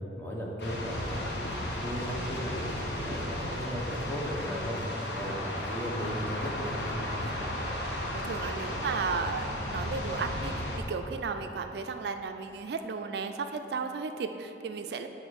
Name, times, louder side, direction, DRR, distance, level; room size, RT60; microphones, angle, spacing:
voice 1, 0.2-4.8 5.2-7.0, equal, 10° left, -3 dB, 0.9 m, -36 dB
sound 1, 0.6-10.8, left 1 dB, 80° left, 0.9 m, -35 dB
sound 2, 0.9-7.4, left 1 dB, 45° left, 0.6 m, -48 dB
voice 2, 8.2-15.1, right 5 dB, 65° right, 7 dB, 0.3 m, -34 dB
6.9 x 3.9 x 6.3 m, 2.8 s
head